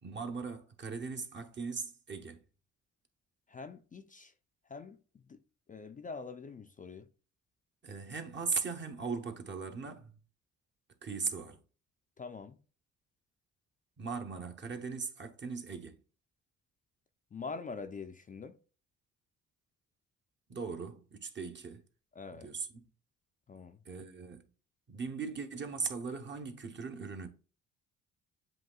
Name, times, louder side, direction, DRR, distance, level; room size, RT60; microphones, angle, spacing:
voice 1, 0.0-2.4 7.8-10.1 11.0-11.6 14.0-16.0 20.5-21.8 22.3-22.9 23.8-24.4 24.9-27.3, right 5 dB, 40° right, 1.0 m, -39 dB
voice 2, 3.5-4.3 4.7-5.4 5.7-7.1 12.2-12.6 17.3-18.6 22.2-22.5 23.5-24.1, left 4 dB, 25° left, 0.4 m, -45 dB
7.7 x 2.9 x 2.3 m
cardioid pair, 90°, 30 cm